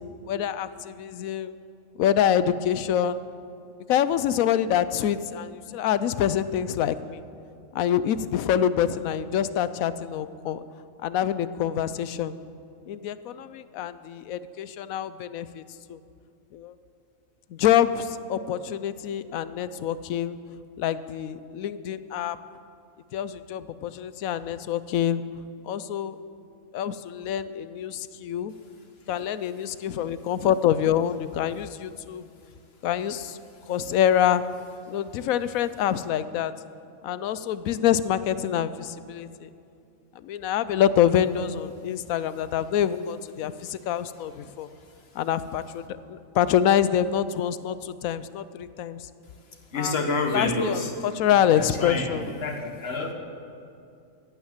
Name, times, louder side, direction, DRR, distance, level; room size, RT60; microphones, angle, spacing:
voice 1, 0.3-1.6 2.0-3.2 3.9-7.2 7.7-10.6 11.0-12.3 12.9-15.6 15.9-16.0 16.5-16.7 17.5-20.4 20.8-22.4 23.1-25.2 25.6-26.2 26.7-28.5 29.1-32.2 32.8-33.4 33.7-34.4 34.9-36.5 37.0-39.5 40.2-44.7 45.2-49.1 49.8-49.9 50.3-52.2, left 10 dB, 90° left, 14 dB, 1.0 m, -26 dB
voice 2, 49.7-50.9 51.5-53.1, left 3 dB, 50° left, 4 dB, 1.6 m, -28 dB
16.5 x 9.2 x 7.3 m, 2.5 s
omnidirectional pair, 1.4 m